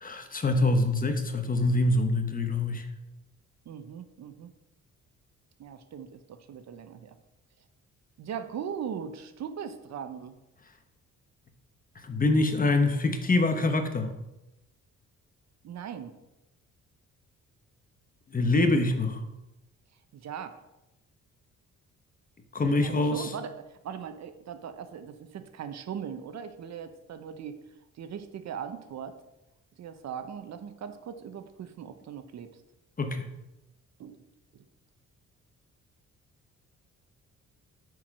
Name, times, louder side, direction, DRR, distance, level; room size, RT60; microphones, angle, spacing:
voice 1, 0.0-2.9 12.0-14.1 18.3-19.2 22.5-23.3 33.0-33.3, left 2 dB, 30° left, 7 dB, 1.2 m, -25 dB
voice 2, 3.7-4.5 5.6-7.1 8.2-10.3 15.6-16.1 20.1-20.6 22.6-27.6 28.0-29.1 29.8-32.5 34.0-34.2 34.5-34.6, right 8 dB, 60° right, 9 dB, 0.9 m, -39 dB
8.7 x 4.8 x 6.1 m, 0.94 s
cardioid pair, 90°, 30 cm